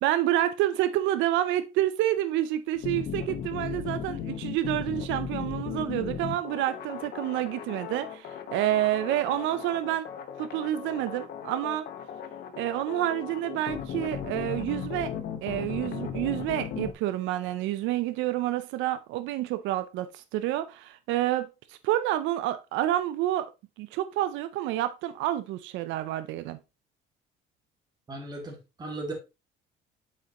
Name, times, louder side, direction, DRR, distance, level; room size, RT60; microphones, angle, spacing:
voice 1, 0.0-10.1 10.4-11.9 12.6-15.1 15.4-23.5 23.8-26.6, right 13 dB, 90° right, 0.5 m, -28 dB
sound 1, 2.8-16.9, left 8 dB, 55° left, 0.9 m, -36 dB
voice 2, 28.1-29.1, right 2 dB, 20° right, 1.9 m, -37 dB
7.4 x 5.5 x 2.9 m
cardioid pair, 160°, 19 cm